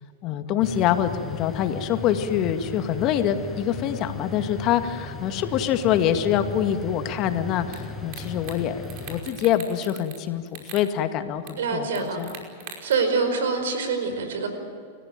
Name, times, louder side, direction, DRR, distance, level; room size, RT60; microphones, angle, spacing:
voice 1, 0.2-12.3, left 10 dB, 40° left, 7 dB, 2.0 m, -25 dB
sound 1, 0.6-9.2, left 2 dB, 5° left, 7.4 m, -36 dB
sound 2, 7.7-7.8 8.1-8.6 8.8-10.2 10.5-10.9 11.5-11.6 12.0-12.9, right 7 dB, 55° right, 5.3 m, -40 dB
voice 2, 11.6-12.2 12.8-14.5, right 4 dB, 75° right, 7 dB, 5.0 m, -25 dB
30.0 x 15.5 x 9.4 m, 2.3 s
hypercardioid pair, 110°, 0 cm